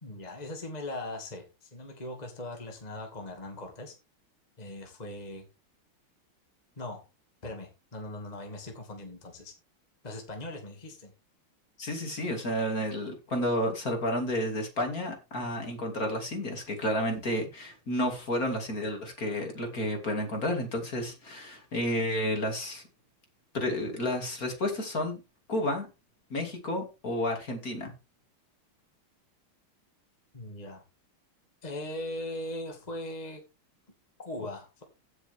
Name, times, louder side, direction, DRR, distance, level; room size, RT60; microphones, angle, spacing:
voice 1, 0.0-4.0 4.6-5.5 6.8-7.0 7.4-9.5 10.0-11.1 30.3-30.8 31.6-33.4 34.2-34.8, left 1 dB, 20° left, 2.2 m, -39 dB
voice 2, 11.8-22.8 23.5-25.2 25.5-25.9 26.3-27.9, left 1 dB, 40° left, 3.1 m, -31 dB
16.0 x 6.5 x 3.6 m
omnidirectional pair, 2.3 m